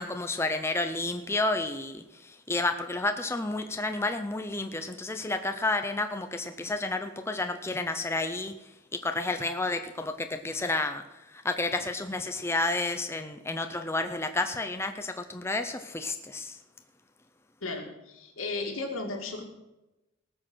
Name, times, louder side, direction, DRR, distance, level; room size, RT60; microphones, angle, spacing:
voice 1, 0.0-8.5 8.9-11.0 11.3-16.6, left 2 dB, 10° left, 7 dB, 0.5 m, -31 dB
voice 2, 17.6-19.4, left 3 dB, 80° left, 2 dB, 2.4 m, -35 dB
18.5 x 6.4 x 6.2 m, 0.97 s
head